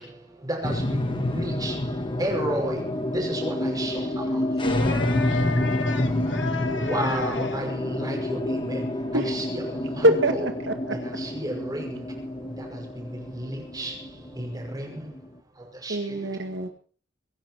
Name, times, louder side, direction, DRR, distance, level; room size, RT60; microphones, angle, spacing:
sound 1, 0.6-15.3, left 1 dB, 25° left, 1.3 m, -28 dB
voice 1, 1.2-1.7 2.2-2.8 3.1-3.9 6.8-8.4 8.7-8.8 9.1-9.6 10.0-10.5 11.3-11.9 13.4-13.5 13.8-13.9 14.4-14.5 14.7-14.9 15.8-15.9, right 1 dB, 20° right, 5.6 m, -30 dB
voice 2, 4.3-7.6, left 4 dB, 70° left, 2.7 m, -32 dB
voice 3, 10.0-11.0 15.9-16.7, right 1 dB, 65° right, 1.9 m, -24 dB
23.5 x 10.5 x 4.6 m
head